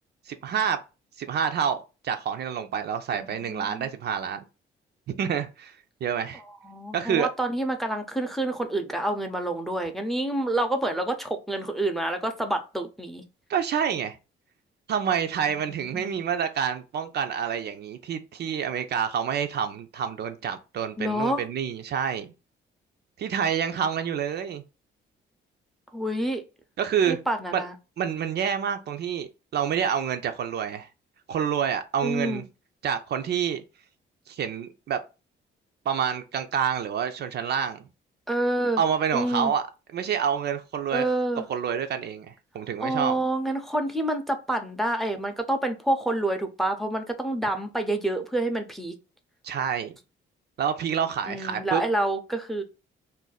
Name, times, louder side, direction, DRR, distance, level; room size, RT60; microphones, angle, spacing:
voice 1, 0.3-0.8 1.2-4.4 5.2-5.8 6.0-6.4 6.9-7.3 13.5-14.2 14.9-22.3 23.2-24.6 26.8-27.2 27.5-27.6 28.0-30.9 31.3-32.4 32.8-33.6 34.3-35.0 35.9-37.8 38.8-39.6 39.9-41.0 41.5-43.2 49.4-49.9 50.6-51.8, right 8 dB, 55° right, 0.4 m, -28 dB
voice 2, 3.1-3.9 6.6-13.2 21.0-21.4 25.9-26.4 27.1-27.7 32.0-32.4 38.3-38.8 39.1-39.5 40.9-41.5 42.8-48.9 51.3-52.6, right 1 dB, ahead, 0.6 m, -28 dB
2.6 x 2.2 x 3.9 m
cardioid pair, 90°, 20 cm